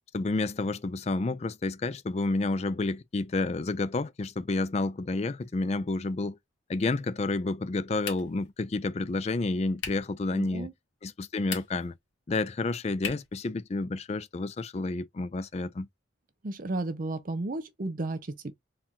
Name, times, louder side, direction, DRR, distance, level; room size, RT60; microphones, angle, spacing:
voice 1, 0.1-6.4 6.7-10.7 11.0-11.9 12.3-15.9, left 3 dB, 35° left, 0.4 m, -30 dB
sound 1, 8.0-8.5 9.8-10.1 11.4-11.9 13.0-13.4, left 7 dB, 85° left, 1.7 m, -38 dB
voice 2, 10.3-10.7 16.4-18.5, right 2 dB, 45° right, 0.6 m, -33 dB
4.3 x 2.5 x 3.6 m
head